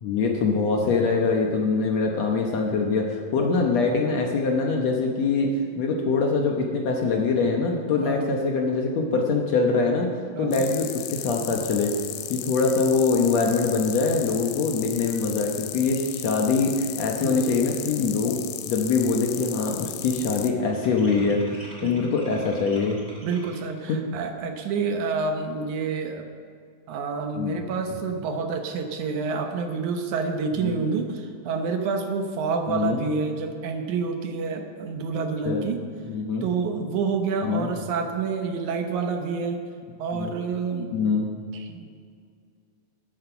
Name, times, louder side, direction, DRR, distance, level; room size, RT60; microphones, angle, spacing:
voice 1, 0.0-10.1 10.4-11.9 12.3-18.4 18.7-23.0 23.9-24.0 27.4-27.6 30.6-30.8 32.7-33.0 35.4-35.6 36.0-36.4 37.4-37.7 40.1-40.3 40.9-41.3, left 4 dB, 65° left, 1 dB, 1.7 m, -24 dB
voice 2, 3.4-3.7 8.0-8.3 10.3-10.6 17.2-17.5 21.8-22.1 23.2-26.3 26.9-35.8 36.4-39.6 40.0-40.9 41.5-41.9, right 4 dB, 70° right, 5 dB, 2.1 m, -28 dB
sound 1, 10.5-20.5, left 12 dB, 85° left, 1.6 m, -35 dB
sound 2, 18.1-18.2 18.5-18.9 19.2-23.8, equal, 15° right, 2.0 m, -46 dB
12.5 x 9.8 x 5.8 m, 2.2 s
omnidirectional pair, 4.1 m